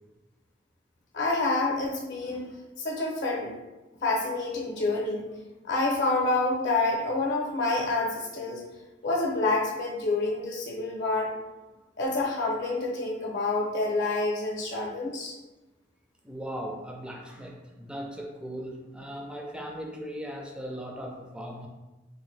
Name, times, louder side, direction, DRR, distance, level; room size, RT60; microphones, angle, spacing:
voice 1, 1.1-2.5 2.8-3.5 4.0-5.3 5.6-8.6 9.0-11.3 12.0-15.3, left 2 dB, 55° left, -2 dB, 0.7 m, -28 dB
voice 2, 16.2-21.7, equal, 5° right, 1 dB, 0.4 m, -38 dB
3.7 x 2.5 x 3.1 m, 1.1 s
head